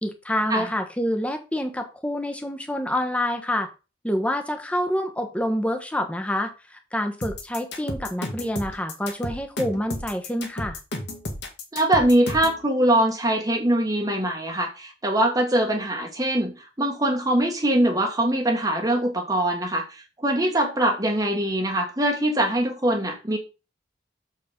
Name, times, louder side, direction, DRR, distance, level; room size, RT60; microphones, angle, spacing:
voice 1, 0.0-3.7 4.0-10.8, left 1 dB, 5° left, 5 dB, 1.1 m, -27 dB
sound 1, 7.2-12.6, left 1 dB, 65° left, 1.9 m, -32 dB
voice 2, 11.7-23.4, right 1 dB, 20° right, 1 dB, 1.2 m, -23 dB
7.0 x 4.8 x 5.1 m, 0.30 s
head